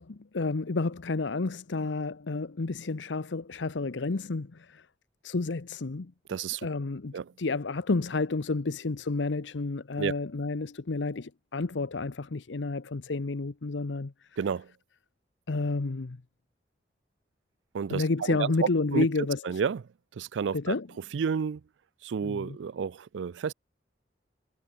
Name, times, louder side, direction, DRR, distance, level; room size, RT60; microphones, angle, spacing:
voice 1, 0.0-4.9 5.2-6.1 6.6-14.1 15.5-16.2 17.9-19.4 20.5-20.9 22.2-22.6, left 3 dB, 85° left, 0.8 m, -30 dB
voice 2, 6.3-6.7 7.1-7.2 10.0-10.1 14.4-14.7 17.7-18.0 18.3-18.5 18.9-19.1 19.4-19.8 20.2-20.7 21.1-21.6 22.0-23.5, right 6 dB, 85° right, 0.4 m, -30 dB
head